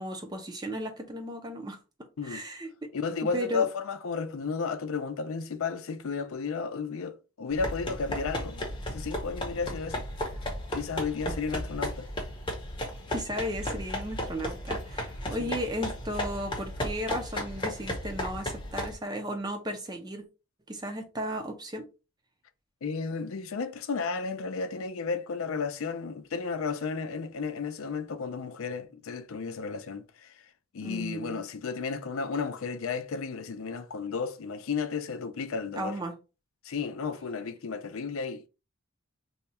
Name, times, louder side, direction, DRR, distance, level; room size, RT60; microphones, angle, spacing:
voice 1, 0.0-1.8 2.2-2.9 3.3-3.7 11.3-11.4 13.1-20.3 20.7-21.9 30.8-31.4 35.8-36.1, equal, 20° right, 0.5 m, -35 dB
voice 2, 2.9-10.0 10.7-12.1 22.8-30.5 30.7-35.9 36.6-38.5, left 5 dB, 75° left, 0.5 m, -33 dB
sound 1, 7.5-18.9, left 1 dB, 25° left, 0.7 m, -35 dB
2.8 x 2.3 x 4.1 m
head